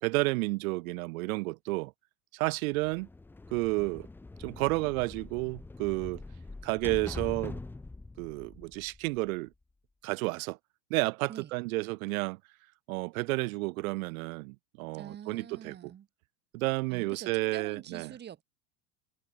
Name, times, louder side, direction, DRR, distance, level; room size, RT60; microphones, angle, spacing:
voice 1, 0.0-1.9 2.3-3.1 3.5-4.1 4.4-6.2 6.6-7.6 8.2-9.5 10.0-10.6 10.9-12.4 12.9-15.9 16.5-18.1, right 24 dB, 85° right, 0.6 m, -31 dB
sound 1, 2.7-9.5, left 2 dB, 5° left, 0.7 m, -44 dB
voice 2, 14.9-16.1 16.9-18.4, right 9 dB, 25° right, 2.5 m, -45 dB
supercardioid pair, 150°, 41 cm